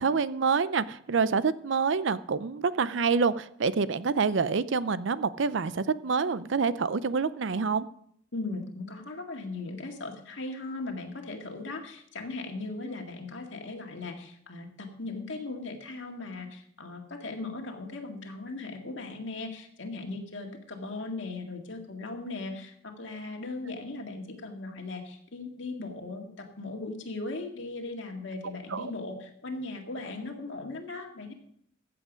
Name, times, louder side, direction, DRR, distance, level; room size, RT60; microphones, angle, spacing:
voice 1, 0.0-7.9 28.7-28.9, right 5 dB, 70° right, 16 dB, 0.5 m, -27 dB
voice 2, 8.3-31.3, left 3 dB, 70° left, 2 dB, 2.0 m, -38 dB
14.5 x 7.8 x 5.1 m, 0.67 s
head